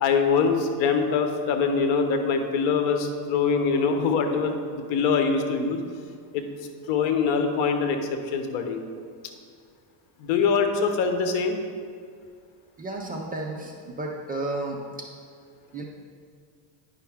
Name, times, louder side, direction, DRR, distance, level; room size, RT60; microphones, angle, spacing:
voice 1, 0.0-5.8 6.3-6.4 6.9-8.8 10.2-11.6, left 5 dB, 70° left, 6 dB, 1.1 m, -23 dB
voice 2, 12.8-14.8 15.7-15.8, right 2 dB, 20° right, 0 dB, 0.3 m, -32 dB
9.7 x 5.7 x 3.5 m, 2.2 s
cardioid pair, 145°, 49 cm